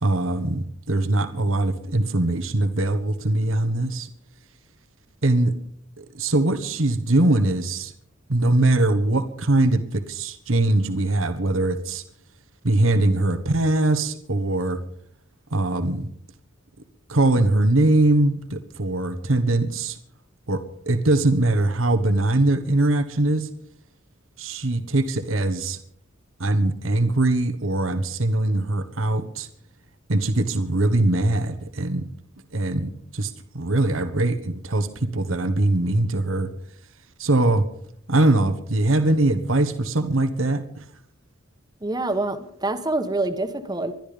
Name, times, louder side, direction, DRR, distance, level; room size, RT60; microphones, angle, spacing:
voice 1, 0.0-4.1 5.2-5.5 6.0-7.9 8.3-12.0 12.6-14.8 15.5-16.1 17.1-20.0 20.5-23.5 24.4-25.8 26.4-29.5 30.1-32.0 32.5-36.5 37.2-37.6 38.1-40.8, right 2 dB, 80° right, 10 dB, 1.4 m, -22 dB
voice 2, 41.8-43.9, right 2 dB, 20° right, 8 dB, 1.3 m, -26 dB
21.0 x 12.5 x 5.2 m, 0.65 s
head